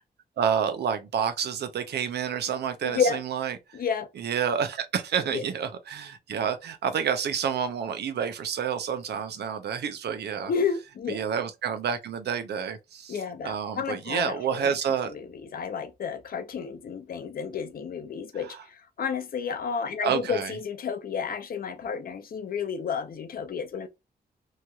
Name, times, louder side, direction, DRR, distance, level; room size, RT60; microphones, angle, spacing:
voice 1, 0.4-3.6 4.2-10.5 11.1-13.2 13.4-15.1 18.4-18.6 20.0-20.5, right 7 dB, 90° right, 0.6 m, -29 dB
voice 2, 2.8-3.2 3.7-4.1 5.3-5.4 10.5-11.2 13.1-14.8 15.1-23.9, left 6 dB, 60° left, 0.6 m, -31 dB
3.1 x 2.8 x 2.3 m
wide cardioid pair, 110°, 17 cm